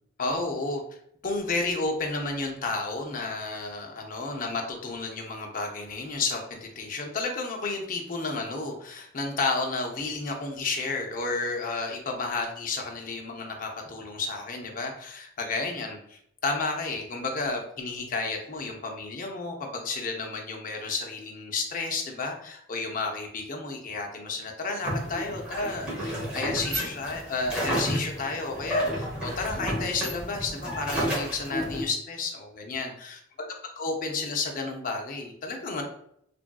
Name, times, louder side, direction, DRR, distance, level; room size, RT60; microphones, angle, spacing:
voice 1, 0.2-0.8 1.2-33.2 33.8-35.8, left 3 dB, 45° left, 2 dB, 0.6 m, -32 dB
sound 1, 24.8-31.8, equal, 5° right, 0.9 m, -31 dB
3.3 x 2.5 x 2.2 m, 0.70 s
head